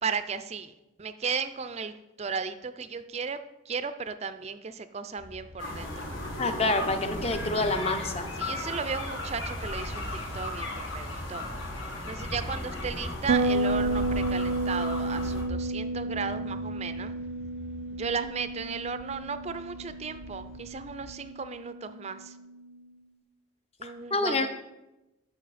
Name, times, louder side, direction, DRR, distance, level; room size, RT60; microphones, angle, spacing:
voice 1, 0.0-3.4 3.7-6.1 8.4-11.4 12.1-17.1 17.9-22.4 23.8-24.5, right 5 dB, 30° right, 11 dB, 0.4 m, -35 dB
sound 1, 5.2-21.2, equal, 45° left, 2.8 m, -48 dB
sound 2, 5.6-15.4, left 1 dB, 70° left, 1.9 m, -35 dB
voice 2, 6.4-8.3 23.8-24.5, left 2 dB, 30° left, 7 dB, 0.7 m, -27 dB
Bass guitar, 13.3-22.6, right 2 dB, 80° right, 0.6 m, -32 dB
13.0 x 5.6 x 4.1 m, 1.0 s
head